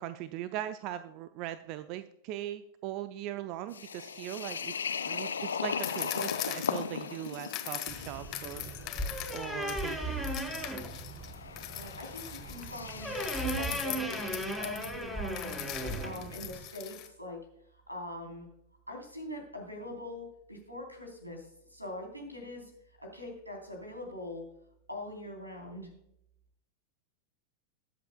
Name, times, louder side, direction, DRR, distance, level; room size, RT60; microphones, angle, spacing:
voice 1, 0.0-8.7 9.3-10.4, right 12 dB, 40° right, 12 dB, 0.5 m, -40 dB
sound 1, 3.7-13.5, left 6 dB, 70° left, 0.6 m, -39 dB
sound 2, 5.8-10.0 10.2-17.1, left 14 dB, 40° left, 1.3 m, -41 dB
sound 3, 7.9-16.6, right 1 dB, 5° right, 3.5 m, -37 dB
voice 2, 11.7-13.2 13.4-15.6 16.0-17.4 17.7-18.5 18.9-22.7 23.0-24.4 24.9-25.9, left 1 dB, 85° right, 2 dB, 3.6 m, -43 dB
21.0 x 8.0 x 2.2 m, 0.77 s
figure-of-eight pair, 90°, 0 cm